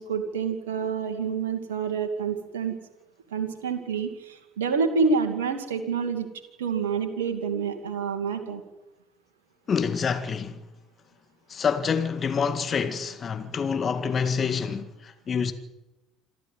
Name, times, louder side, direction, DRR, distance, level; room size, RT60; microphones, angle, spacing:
voice 1, 0.0-2.8 3.3-6.3 6.6-8.6, right 5 dB, 80° right, 2.3 m, -28 dB
voice 2, 9.7-10.6 11.5-15.5, left 6 dB, 40° left, 2.0 m, -27 dB
27.0 x 12.5 x 9.5 m
hypercardioid pair, 60°, 0 cm